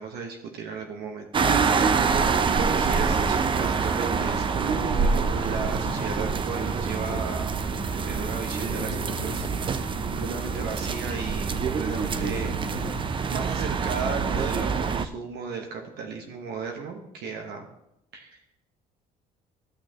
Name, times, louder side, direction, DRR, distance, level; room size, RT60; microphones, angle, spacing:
voice 1, 0.0-1.5 2.6-7.5 7.9-12.5 13.3-17.7 18.1-18.4, right 5 dB, 75° right, 2 dB, 1.3 m, -35 dB
sound 1, 1.3-15.1, right 5 dB, 30° right, 0.5 m, -26 dB
sound 2, 3.7-13.0, left 13 dB, 60° left, 0.8 m, -43 dB
13.5 x 6.4 x 3.0 m, 0.81 s
cardioid pair, 110°, 17 cm